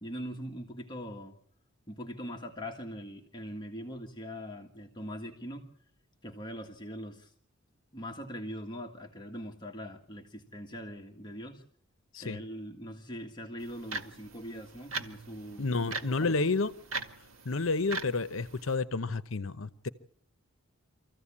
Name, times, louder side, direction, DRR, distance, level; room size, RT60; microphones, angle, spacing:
voice 1, 0.0-1.4 1.9-5.6 6.2-7.3 7.9-11.6 12.2-16.3, equal, 20° left, 2 dB, 1.7 m, -42 dB
sound 1, 13.6-18.7, right 3 dB, 80° right, 2.0 m, -41 dB
voice 2, 15.6-16.7 17.4-19.9, left 3 dB, 75° left, 13 dB, 0.9 m, -30 dB
25.5 x 15.0 x 8.6 m, 0.64 s
head